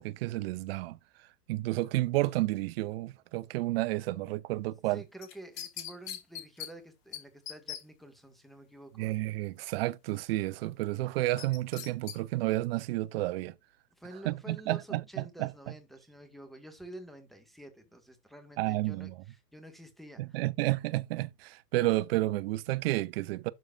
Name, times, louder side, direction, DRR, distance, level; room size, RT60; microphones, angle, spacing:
voice 1, 0.0-5.0 9.0-13.6 14.2-15.5 18.6-19.2 20.2-23.5, right 18 dB, 40° right, 0.7 m, -31 dB
voice 2, 4.9-9.1 14.0-20.4, right 1 dB, ahead, 1.9 m, -49 dB
sound 1, 5.2-6.7 7.1-7.2 7.5-7.8 11.4-12.2 12.6-12.7, left 10 dB, 35° left, 2.1 m, -40 dB
12.0 x 4.7 x 2.5 m
hypercardioid pair, 115°, 49 cm